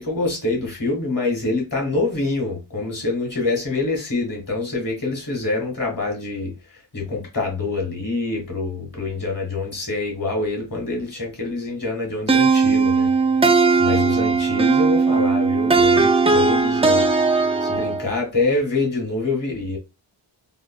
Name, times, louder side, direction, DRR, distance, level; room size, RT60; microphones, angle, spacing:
voice 1, 0.0-6.5 6.9-13.1 13.8-17.1 17.6-19.8, left 3 dB, 45° left, 1.7 m, -25 dB
sound 1, 12.3-18.1, right 4 dB, 15° right, 0.4 m, -18 dB
3.3 x 2.5 x 2.3 m
wide cardioid pair, 85°, 45 cm